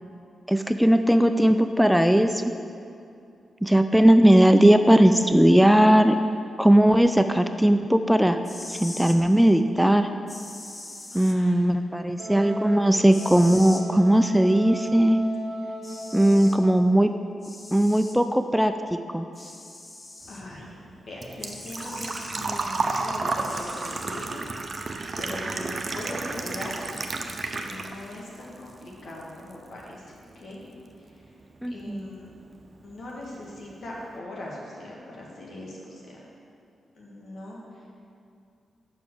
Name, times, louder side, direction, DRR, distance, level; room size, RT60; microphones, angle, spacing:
voice 1, 0.5-2.4 3.6-6.2 6.6-8.4 8.7-10.1 11.1-15.2 16.1-17.1 17.7-18.7 19.1-19.3 31.6-32.0, right 1 dB, ahead, 8 dB, 0.3 m, -18 dB
sound 1, 8.3-9.2 10.3-11.4 13.1-13.9 15.3-15.4 15.8-16.6 17.4-18.2 19.3-20.4 21.4-22.4 23.4-24.4, left 2 dB, 35° left, 0.8 m, -41 dB
voice 2, 11.1-11.6 20.3-24.4 25.2-26.8 27.5-30.6 31.0-31.3 31.7-32.3 32.8-36.2 37.0-38.0, left 1 dB, 65° left, -4 dB, 1.8 m, -40 dB
Wind instrument woodwind instrument, 12.2-16.9, right 1 dB, 90° right, 0.7 m, -36 dB
Engine / Trickle dribble / Fill (with liquid), 20.3-28.2 28.5-29.5 29.8-29.9 31.8-31.9 32.1-32.4 32.8-32.9 33.1-33.2, right 3 dB, 50° right, 0.6 m, -31 dB
5.8 x 5.1 x 6.7 m, 2.4 s
supercardioid pair, 45°, 0 cm